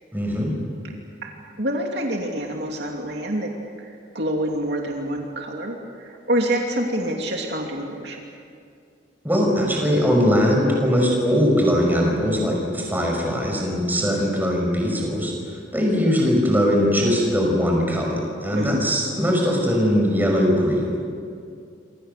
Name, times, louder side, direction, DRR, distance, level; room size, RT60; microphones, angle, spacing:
voice 1, 0.1-0.5 9.2-20.9, equal, 10° right, 0 dB, 5.5 m, -21 dB
voice 2, 1.6-3.5 3.8-8.2 18.5-18.8, right 1 dB, 60° right, 0 dB, 2.8 m, -27 dB
27.5 x 26.0 x 6.8 m, 2.4 s
head